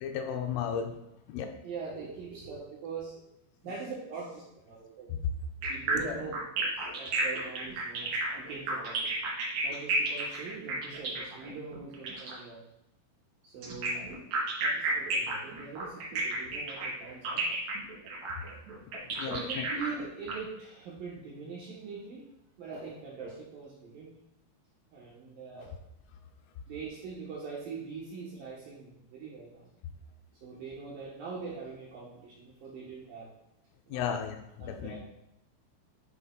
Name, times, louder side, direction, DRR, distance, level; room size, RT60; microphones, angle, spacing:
voice 1, 0.0-1.0 1.3-1.5 5.1-5.2 5.9-6.2 19.1-19.6 33.9-35.0, left 8 dB, 80° left, 4 dB, 3.1 m, -34 dB
voice 2, 1.6-3.2 3.6-5.1 5.7-8.1 8.3-9.1 9.6-12.6 13.4-14.1 14.6-17.5 19.3-22.2 22.6-24.1 24.9-25.7 26.7-29.7 30.4-33.3 33.9-34.2 34.6-35.0, right 4 dB, 75° right, -5 dB, 2.0 m, -42 dB
sound 1, 5.6-12.4 13.6-20.3, right 4 dB, 50° right, 2.5 m, -33 dB
11.5 x 5.5 x 2.3 m, 0.84 s
omnidirectional pair, 5.9 m